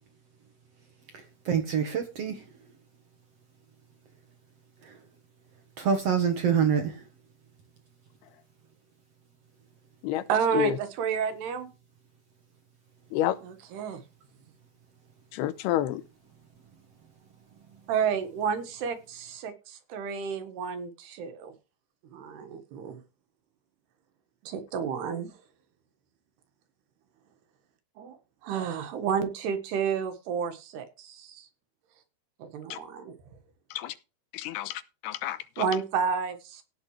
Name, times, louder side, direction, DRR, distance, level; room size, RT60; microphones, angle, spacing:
voice 1, 1.1-2.5 4.8-5.0 5.8-7.0, right 7 dB, 65° right, 1.5 m, -26 dB
voice 2, 10.3-11.7 13.4-14.0 17.9-21.5 22.1-23.0 24.4-25.3 28.0-28.2 28.4-31.5 32.4-33.1 35.6-36.6, right 7 dB, 90° right, 3.7 m, -31 dB
voice 3, 15.3-16.0 32.7-32.8 33.7-33.9 34.3-35.7, left 13 dB, 90° left, 2.9 m, -29 dB
17.0 x 6.8 x 3.2 m
omnidirectional pair, 4.5 m